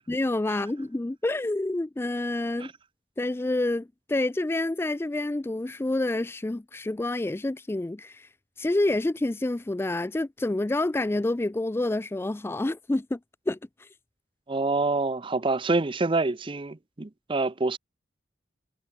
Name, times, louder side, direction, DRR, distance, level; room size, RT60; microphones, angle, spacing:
voice 1, 0.1-2.7 3.2-8.3 8.6-13.2 13.5-13.9, left 2 dB, 15° left, 0.3 m, -28 dB
voice 2, 14.5-17.8, right 3 dB, 25° right, 0.6 m, -26 dB
head